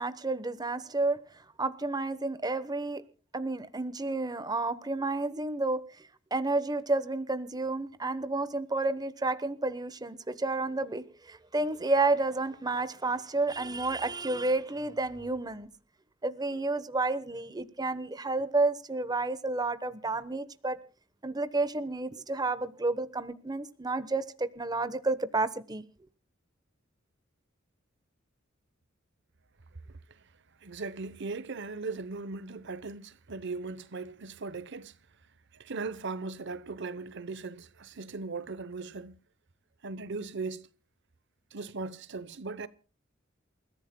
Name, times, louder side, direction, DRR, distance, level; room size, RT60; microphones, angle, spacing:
voice 1, 0.0-3.0 3.3-15.7 16.2-20.8 21.2-25.8, right 3 dB, 20° right, 1.0 m, -31 dB
voice 2, 29.9-30.3 30.6-35.0 35.5-39.2 39.8-40.7 41.5-42.7, right 3 dB, 60° right, 0.9 m, -38 dB
28.5 x 14.5 x 2.2 m
head